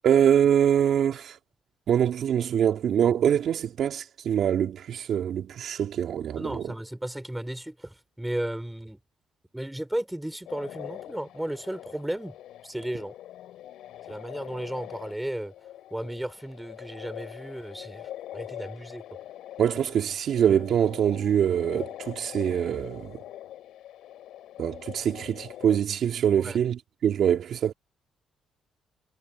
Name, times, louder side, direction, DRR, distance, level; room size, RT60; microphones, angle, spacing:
voice 1, 0.0-1.4 1.9-6.6 19.6-23.2 24.6-27.7, right 9 dB, 65° right, 2.3 m, -24 dB
voice 2, 6.4-9.0 9.5-12.4 12.6-13.1 14.1-15.5 15.9-19.0 26.4-26.6, right 1 dB, 5° right, 5.6 m, -34 dB
sound 1, 10.5-25.8, left 12 dB, 85° left, 3.4 m, -43 dB
cardioid pair, 90°, 0 cm